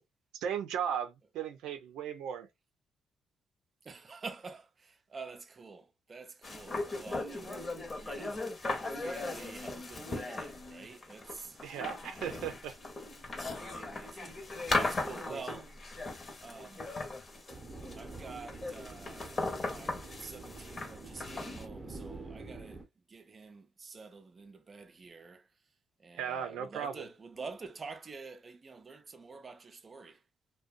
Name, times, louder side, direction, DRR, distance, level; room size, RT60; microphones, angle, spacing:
voice 1, 0.3-2.5 6.7-6.8 11.6-12.8 15.3-15.4 26.1-27.0, right 8 dB, 90° right, 0.5 m, -36 dB
voice 2, 3.8-7.7 8.0-8.5 8.8-11.6 13.4-15.7 16.4-17.0 18.0-25.5 26.0-30.2, right 4 dB, 35° right, 0.5 m, -48 dB
sound 1, 6.4-21.7, left 2 dB, 35° left, 0.9 m, -38 dB
sound 2, 17.5-22.8, right 3 dB, 15° right, 0.8 m, -47 dB
2.6 x 2.2 x 2.5 m
cardioid pair, 90°, 0 cm